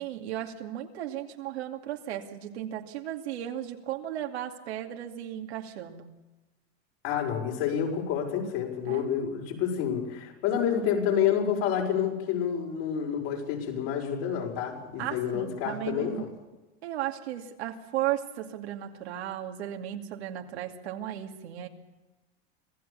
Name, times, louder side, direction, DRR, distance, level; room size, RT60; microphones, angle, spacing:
voice 1, 0.0-6.1 8.9-9.0 15.0-16.3 16.8-21.7, right 12 dB, 90° right, 3 dB, 2.6 m, -35 dB
voice 2, 7.0-16.3, left 8 dB, 65° left, 0 dB, 6.2 m, -29 dB
26.0 x 16.0 x 7.1 m, 1.1 s
supercardioid pair, 125°, 32 cm